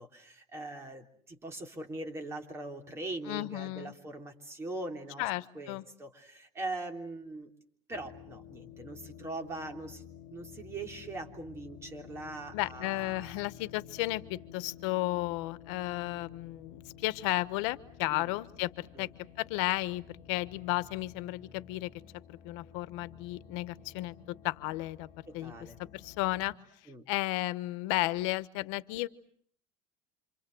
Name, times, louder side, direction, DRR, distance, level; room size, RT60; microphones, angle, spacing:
voice 1, 0.0-5.2 5.5-7.5 7.9-13.4 18.1-18.3 18.9-19.1 25.3-25.8 26.9-27.1, right 2 dB, 15° right, 3 dB, 3.2 m, -41 dB
voice 2, 3.3-3.9 5.2-5.8 12.5-19.1 19.4-21.9 22.3-25.1 25.3-25.5 25.8-26.5 27.1-29.1, left 19 dB, 90° left, 16 dB, 1.2 m, -33 dB
sound 1, 7.9-26.5, left 8 dB, 35° left, 2.0 m, -52 dB
27.5 x 27.5 x 7.8 m, 0.62 s
cardioid pair, 180°, 15 cm